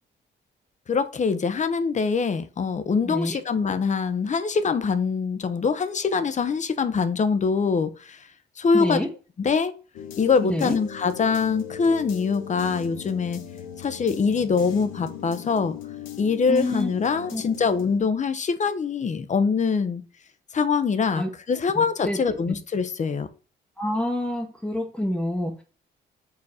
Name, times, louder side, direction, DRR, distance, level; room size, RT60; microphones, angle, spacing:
voice 1, 0.9-8.2 8.6-9.0 9.4-9.7 10.2-13.4 13.8-15.7 16.2-20.0 20.5-23.3, left 5 dB, 35° left, 11 dB, 0.8 m, -24 dB
voice 2, 3.0-3.4 8.7-9.1 10.4-10.8 16.5-16.9 17.3-17.4 21.2-21.3 21.8-22.5 23.8-25.6, left 1 dB, 5° left, 1 dB, 1.0 m, -27 dB
sound 1, 9.9-18.0, left 8 dB, 80° left, 0.9 m, -39 dB
4.8 x 4.1 x 4.8 m, 0.36 s
cardioid pair, 90°, 20 cm